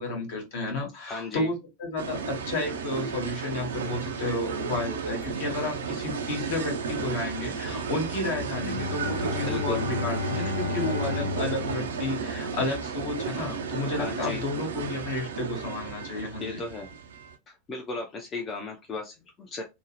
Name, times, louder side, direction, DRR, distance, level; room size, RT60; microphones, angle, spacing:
voice 1, 0.0-16.6, left 2 dB, 55° left, 1 dB, 1.1 m, -32 dB
voice 2, 1.0-1.5 9.5-9.9 13.9-14.4 16.4-16.9 17.5-19.6, left 3 dB, 25° left, 2 dB, 0.5 m, -35 dB
sound 1, 2.0-17.4, right 6 dB, 70° right, 0.4 m, -33 dB
Bowed string instrument, 8.6-12.9, left 4 dB, 85° left, 0.6 m, -33 dB
2.6 x 2.0 x 2.8 m, 0.24 s
figure-of-eight pair, 85°, 0 cm